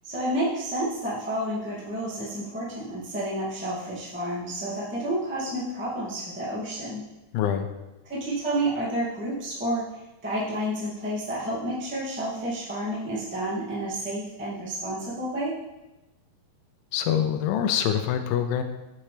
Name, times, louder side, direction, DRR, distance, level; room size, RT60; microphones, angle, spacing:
voice 1, 0.0-7.0 8.0-9.9 10.2-15.5, right 1 dB, 10° right, -8 dB, 0.5 m, -30 dB
voice 2, 7.3-7.7 16.9-18.6, left 9 dB, 80° left, 8 dB, 2.4 m, -25 dB
7.9 x 7.3 x 3.3 m, 1.0 s
omnidirectional pair, 4.6 m